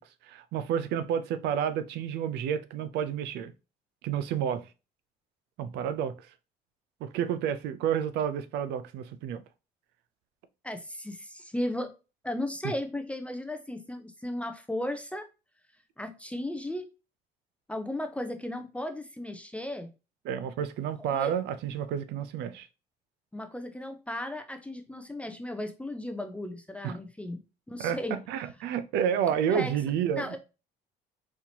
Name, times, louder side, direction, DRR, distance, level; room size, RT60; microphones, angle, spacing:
voice 1, 0.3-3.5 4.0-4.6 5.6-6.1 7.0-9.4 20.2-22.7 26.8-26.9 27.8-30.4, right 8 dB, 80° right, 0.5 m, -30 dB
voice 2, 10.6-11.9 12.2-15.3 16.0-16.9 17.7-19.9 21.0-21.3 23.3-27.4 27.7-28.2 29.5-29.8 30.1-30.4, left 1 dB, 5° left, 0.5 m, -35 dB
4.2 x 2.8 x 2.7 m
cardioid pair, 110°, 17 cm